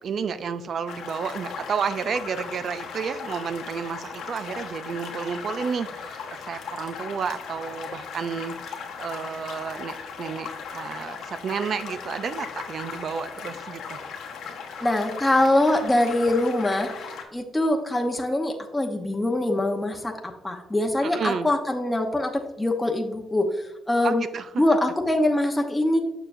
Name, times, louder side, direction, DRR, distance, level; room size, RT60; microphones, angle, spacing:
voice 1, 0.0-14.0 21.0-21.5 24.0-24.6, right 6 dB, 55° right, 12 dB, 0.5 m, -31 dB
sound 1, 0.9-17.2, left 6 dB, 80° left, 1.1 m, -37 dB
voice 2, 14.8-24.3 24.6-26.0, left 1 dB, 10° left, 2 dB, 0.8 m, -23 dB
6.9 x 5.9 x 2.5 m, 0.93 s
cardioid pair, 90°, 0 cm